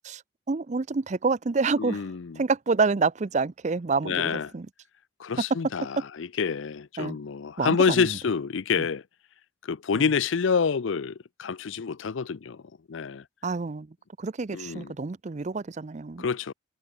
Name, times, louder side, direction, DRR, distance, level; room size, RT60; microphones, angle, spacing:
voice 1, 0.5-2.1 2.4-4.7 7.0-7.2 7.6-8.1 8.8-8.9 9.9-10.0 13.4-13.9 14.2-16.3, right 4 dB, 35° right, 0.5 m, -28 dB
voice 2, 1.8-2.4 4.0-4.5 5.2-9.0 9.6-12.6 12.9-13.2 14.5-14.9 16.2-16.5, left 5 dB, 75° left, 0.5 m, -27 dB
head